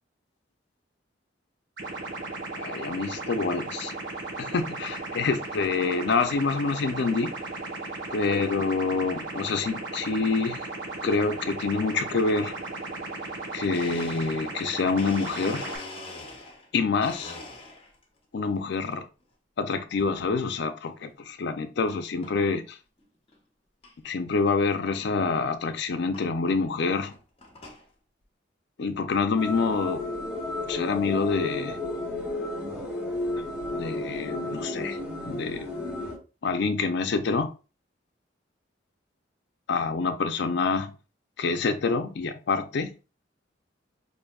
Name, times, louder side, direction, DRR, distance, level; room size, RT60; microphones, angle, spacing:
sound 1, 1.8-15.8, right 2 dB, 75° right, 0.9 m, -36 dB
voice 1, 2.5-3.9 4.4-7.3 8.1-10.6 11.0-12.5 13.5-15.7 16.7-17.4 18.3-19.0 19.6-22.8 24.0-27.1 28.8-30.0 30.7-31.8 33.7-35.0 35.3-35.7 36.4-37.5 39.7-40.9 41.4-42.9, left 4 dB, 65° left, 0.4 m, -27 dB
Domestic sounds home sounds, 13.7-16.7 17.0-18.0 18.5-19.0 20.0-20.3 20.9-21.0 21.9-22.0 22.2-22.6 23.0-23.1 23.3-23.4 23.8-23.9 25.2-25.3 26.1-26.3 26.9-27.9, left 2 dB, 30° left, 0.8 m, -43 dB
sound 2, 29.4-36.2, left 2 dB, 5° right, 1.0 m, -32 dB
4.8 x 2.6 x 2.3 m
head